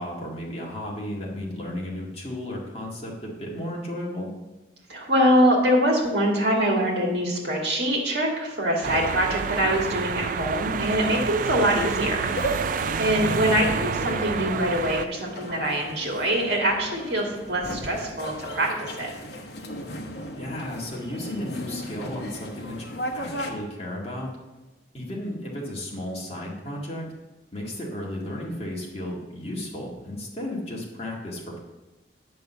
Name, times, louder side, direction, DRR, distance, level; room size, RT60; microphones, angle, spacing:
voice 1, 0.0-4.3 13.2-13.5 20.4-24.3 24.9-27.1 27.5-31.6, left 1 dB, 35° left, -3 dB, 1.9 m, -34 dB
voice 2, 4.9-12.3 13.0-19.1, equal, 60° right, 0 dB, 2.1 m, -24 dB
sound 1, 8.8-15.1, right 6 dB, 45° right, 0.3 m, -29 dB
sound 2, 12.2-23.5, equal, 60° left, 1.1 m, -36 dB
9.5 x 5.4 x 6.9 m, 1.1 s
head